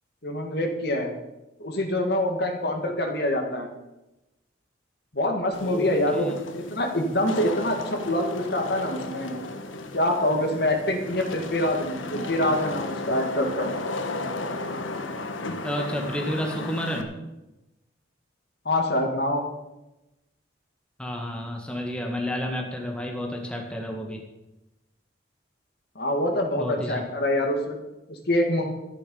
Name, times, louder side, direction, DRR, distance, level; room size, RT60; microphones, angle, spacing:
voice 1, 0.2-1.1 1.6-3.7 5.1-9.3 9.9-13.7 18.6-19.4 26.0-27.7 28.1-28.7, left 1 dB, 55° left, 4 dB, 2.2 m, -25 dB
Wind / Rain, 5.5-17.0, left 2 dB, 90° left, 1.4 m, -34 dB
voice 2, 5.6-6.3 15.6-17.1 21.0-24.2 26.6-27.0, equal, 5° left, 1 dB, 1.7 m, -31 dB
13.5 x 11.0 x 5.6 m, 0.97 s
head